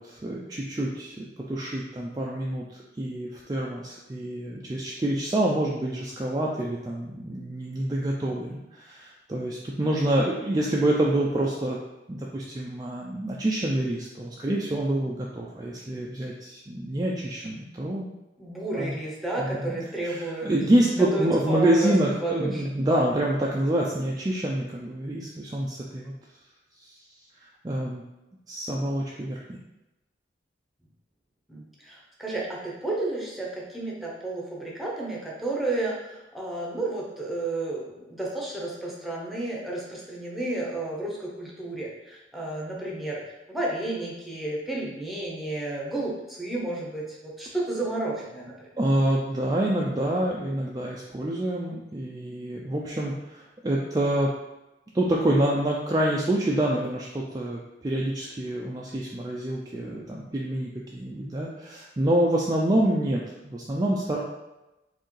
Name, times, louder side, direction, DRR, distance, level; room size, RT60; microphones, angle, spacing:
voice 1, 0.0-2.6 3.0-11.8 12.1-18.1 18.7-18.9 19.4-19.8 20.0-26.1 27.6-28.0 28.5-29.6 48.8-54.3 54.9-64.2, right 1 dB, 20° right, -3 dB, 0.4 m, -27 dB
voice 2, 18.4-20.5 21.0-22.6 31.5-43.2 43.5-48.7, right 2 dB, ahead, -4 dB, 0.8 m, -32 dB
4.5 x 3.4 x 3.2 m, 1.0 s
head